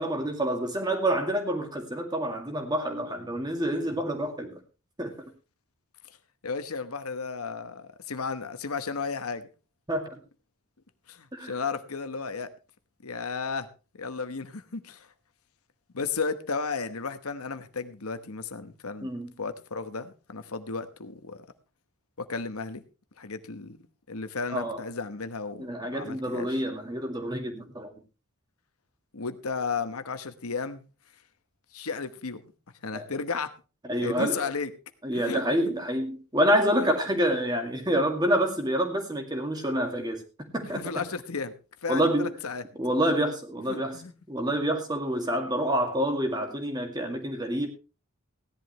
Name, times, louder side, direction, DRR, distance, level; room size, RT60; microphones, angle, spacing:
voice 1, 0.0-4.6 5.0-5.1 9.9-10.2 11.3-11.5 19.0-19.3 24.5-24.8 25.6-27.9 32.9-33.0 33.9-34.4 35.0-40.2 40.5-40.8 41.9-42.3 42.8-44.0 44.3-47.7, equal, 20° right, 4 dB, 2.1 m, -27 dB
voice 2, 6.4-9.5 11.1-12.5 13.0-13.7 13.9-15.1 15.9-21.4 22.2-22.8 23.2-23.8 24.1-26.6 29.1-30.8 31.7-32.4 32.8-33.5 34.0-34.7 35.1-35.4 36.8-36.9 40.7-41.5 41.8-42.6 43.7-44.1, left 4 dB, 80° left, 10 dB, 1.1 m, -34 dB
16.5 x 11.0 x 3.2 m, 0.32 s
head